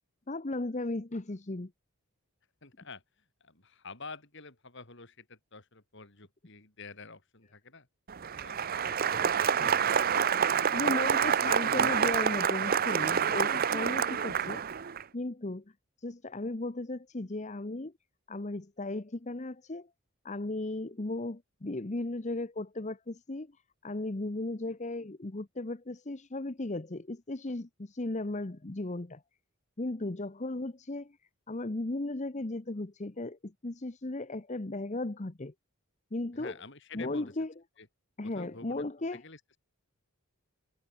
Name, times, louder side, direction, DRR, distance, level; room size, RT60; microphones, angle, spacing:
voice 1, 0.3-1.7 10.7-15.6 16.0-17.9 18.3-19.9 20.2-23.5 23.8-29.2 29.8-31.2 31.5-35.5 36.1-36.5 36.9-37.5 38.2-39.2, left 2 dB, 30° left, 0.9 m, -36 dB
voice 2, 2.6-7.9 8.4-10.9 11.2-11.3 36.3-37.3 37.8-37.9 38.2-38.9 39.1-39.6, left 3 dB, 55° left, 3.8 m, -49 dB
Applause, 8.1-15.0, right 7 dB, 40° right, 0.6 m, -27 dB
head